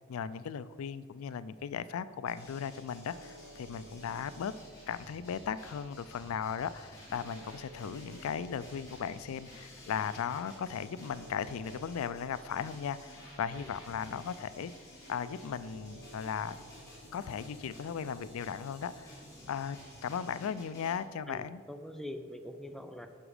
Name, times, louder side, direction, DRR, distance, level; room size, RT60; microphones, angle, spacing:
voice 1, 0.1-4.5 4.9-14.7 15.1-16.6 17.1-19.2 19.5-19.8 20.0-21.6, left 7 dB, 90° left, 15 dB, 0.3 m, -37 dB
sound 1, 2.3-20.9, left 1 dB, 15° left, 2.7 m, -53 dB
sound 2, 2.5-20.8, right 3 dB, 65° right, 0.5 m, -58 dB
voice 2, 21.3-23.1, left 1 dB, ahead, 6 dB, 0.4 m, -44 dB
9.9 x 6.2 x 4.9 m, 2.1 s
head